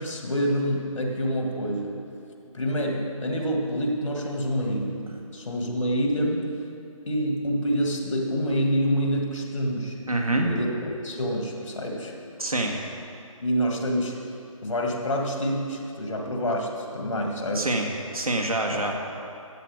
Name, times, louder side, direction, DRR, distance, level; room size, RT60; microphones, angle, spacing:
voice 1, 0.0-2.0 2.4-5.0 5.3-6.4 7.1-10.0 10.3-10.7 11.0-12.1 13.4-14.2 14.6-17.7 18.6-18.9, equal, 60° left, 1 dB, 2.0 m, -27 dB
voice 2, 10.1-10.5 12.4-12.8 17.5-19.0, right 2 dB, 85° right, 1 dB, 1.8 m, -26 dB
14.0 x 8.3 x 4.9 m, 2.6 s
figure-of-eight pair, 150°, 18 cm